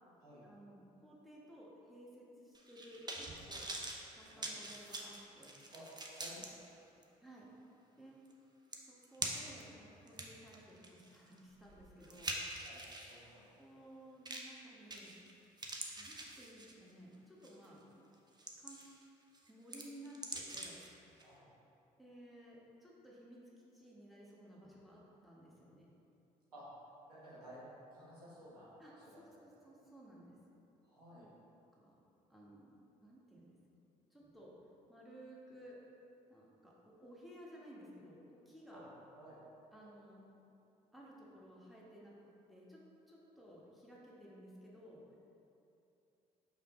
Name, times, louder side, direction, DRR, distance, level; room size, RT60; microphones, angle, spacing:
voice 1, 0.4-3.7 4.1-5.5 7.2-7.5 8.0-8.2 8.8-12.3 13.6-15.1 16.0-18.0 18.6-18.8 19.5-20.8 22.0-23.4 23.7-25.9 28.8-30.4 31.1-31.3 31.8-32.0 32.3-33.5 34.1-34.5 34.9-35.8 36.3-38.9 39.7-40.2 40.9-42.8 43.1-45.0, equal, ahead, -5 dB, 1.5 m, -56 dB
sound 1, 2.5-6.5 7.0-7.1 8.3-8.4 8.7-9.6 10.1-13.2 14.3-14.6 14.9-15.3 15.6-16.9 17.4-17.7 18.1-19.0 19.3-20.9 21.2-21.3, right 2 dB, 20° right, 0.8 m, -44 dB
voice 2, 4.1-4.6 5.7-6.4 12.6-12.8 13.0-13.5 21.2-21.5 26.5-26.7 27.1-29.4 30.8-31.3 38.7-38.8 39.1-39.4, equal, 90° right, -9 dB, 1.4 m, -55 dB
5.5 x 4.8 x 3.7 m, 2.8 s
figure-of-eight pair, 45°, 19 cm